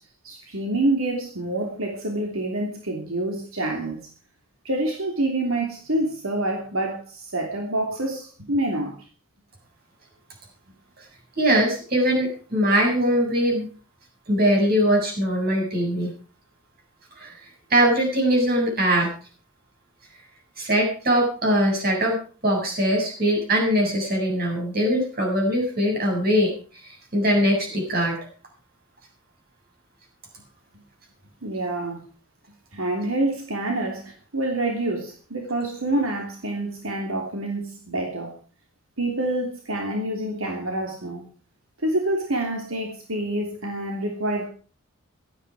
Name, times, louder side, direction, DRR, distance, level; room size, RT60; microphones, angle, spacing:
voice 1, 0.2-4.0 4.6-8.9 31.4-32.0 32.7-38.3 39.0-41.2 41.8-44.5, right 1 dB, 80° right, 2 dB, 3.1 m, -27 dB
voice 2, 11.4-13.7 14.3-16.1 17.2-17.3 17.7-19.1 20.6-22.2 22.4-26.5 26.8-28.2, equal, 45° right, 1 dB, 7.2 m, -21 dB
16.5 x 13.0 x 4.9 m, 0.39 s
head